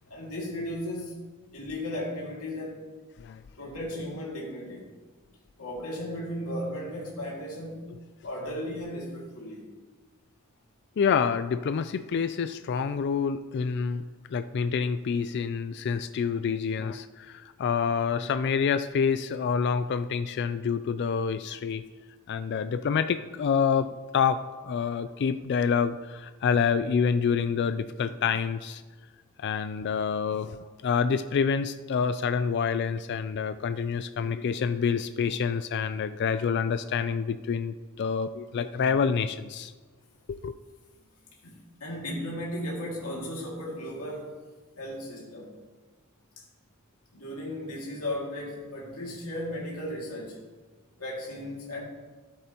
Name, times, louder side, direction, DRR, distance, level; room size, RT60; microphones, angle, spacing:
voice 1, 0.1-1.2 1.5-2.9 3.6-4.9 5.6-7.9 8.2-9.7 41.4-44.4 44.8-45.6 46.4-46.5 47.1-50.4 51.0-51.8, left 1 dB, 85° left, -4 dB, 2.3 m, -35 dB
voice 2, 11.0-14.0 14.3-21.8 22.3-28.8 29.4-39.7 40.3-40.5, left 6 dB, 50° left, 11 dB, 0.3 m, -27 dB
13.5 x 8.0 x 2.9 m, 1.3 s
head